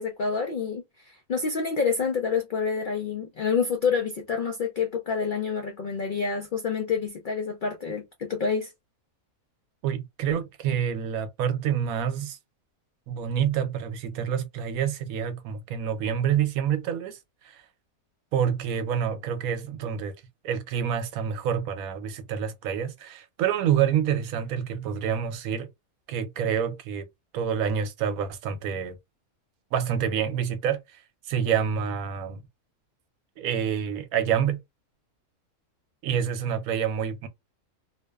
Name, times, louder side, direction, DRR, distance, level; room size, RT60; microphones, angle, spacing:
voice 1, 0.0-8.7, left 5 dB, 85° left, 0.4 m, -28 dB
voice 2, 9.8-12.4 13.1-17.2 18.3-20.1 20.4-25.7 26.1-27.1 27.3-29.0 29.7-30.8 31.3-32.4 33.4-34.6 36.0-37.3, right 8 dB, 80° right, 1.0 m, -27 dB
2.8 x 2.1 x 2.2 m
omnidirectional pair, 1.5 m